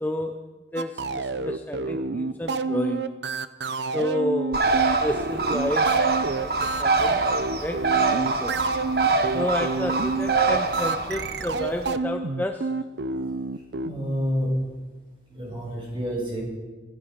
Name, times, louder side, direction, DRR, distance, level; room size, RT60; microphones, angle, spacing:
voice 1, 0.0-0.4 0.7-3.2 3.9-4.7 5.0-6.0 6.4-7.2 7.6-8.5 9.3-12.7, left 1 dB, 10° left, 6 dB, 0.6 m, -30 dB
sound 1, 0.8-13.9, right 4 dB, 70° right, 0.7 m, -29 dB
Bird, 4.5-11.9, right 4 dB, 55° right, 1.2 m, -25 dB
voice 2, 13.8-14.6 15.3-16.4, equal, 25° right, -3 dB, 6.5 m, -28 dB
16.5 x 15.0 x 5.7 m, 1.3 s
head